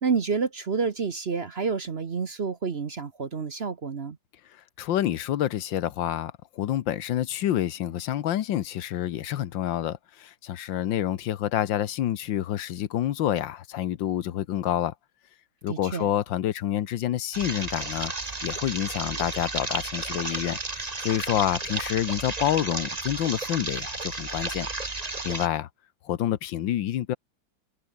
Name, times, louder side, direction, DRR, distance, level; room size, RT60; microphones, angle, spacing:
voice 1, 0.0-4.2 15.7-16.1, right 5 dB, 40° right, 1.1 m, -29 dB
voice 2, 4.8-14.9 15.6-18.1 18.4-24.7 25.2-25.7 26.0-27.2, left 11 dB, 85° left, 1.7 m, -28 dB
sound 1, 17.3-25.5, right 3 dB, 20° right, 1.9 m, -33 dB
open air
omnidirectional pair, 2.0 m